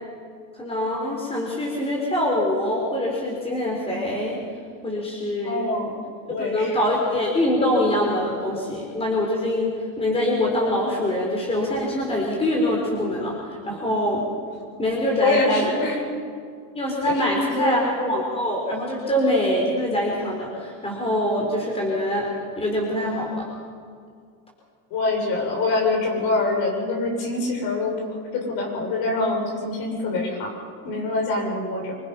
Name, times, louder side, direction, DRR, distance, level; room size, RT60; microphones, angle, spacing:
voice 1, 0.6-4.4 4.8-5.7 6.4-14.3 14.8-15.7 16.7-22.3 22.6-23.4, left 1 dB, 15° left, -2 dB, 4.3 m, -24 dB
voice 2, 5.4-6.0 6.3-6.8 15.2-16.0 17.0-17.9 24.9-30.5 30.8-32.0, left 2 dB, 60° left, 0 dB, 7.2 m, -25 dB
25.5 x 21.5 x 5.8 m, 2.2 s
supercardioid pair, 130°, 42 cm